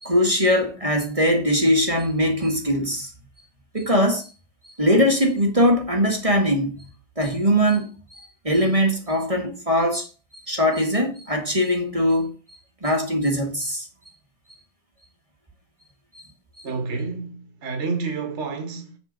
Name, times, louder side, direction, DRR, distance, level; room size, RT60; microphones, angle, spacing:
voice 1, 0.0-3.1 3.7-4.3 4.8-6.9 7.2-10.1 10.5-12.3 12.8-13.9 16.6-16.7, equal, 20° right, 1.5 m, -21 dB
voice 2, 16.6-19.0, right 4 dB, 35° right, 1.8 m, -29 dB
7.6 x 4.5 x 6.7 m
omnidirectional pair, 2.1 m